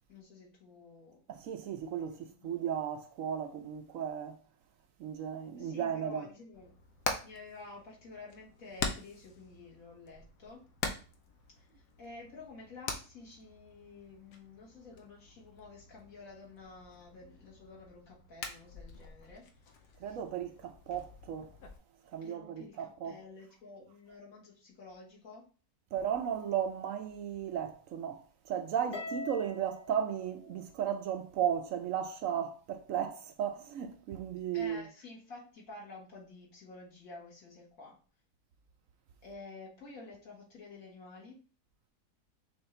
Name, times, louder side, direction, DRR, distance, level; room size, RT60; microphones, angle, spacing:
voice 1, 0.1-1.2 2.2-2.6 5.6-6.8 7.2-10.6 11.6-11.7 12.0-19.4 20.1-20.2 22.2-25.4 34.5-38.0 39.2-41.4, left 3 dB, 60° left, 1.9 m, -50 dB
voice 2, 1.3-4.4 5.0-6.2 20.0-21.5 22.1-23.2 25.9-34.8, right 9 dB, 65° right, 0.9 m, -35 dB
Hammer, 6.5-21.8, left 4 dB, 85° left, 1.3 m, -44 dB
Harp, 28.9-31.4, left 2 dB, 45° left, 0.9 m, -44 dB
6.1 x 2.4 x 3.2 m
omnidirectional pair, 1.7 m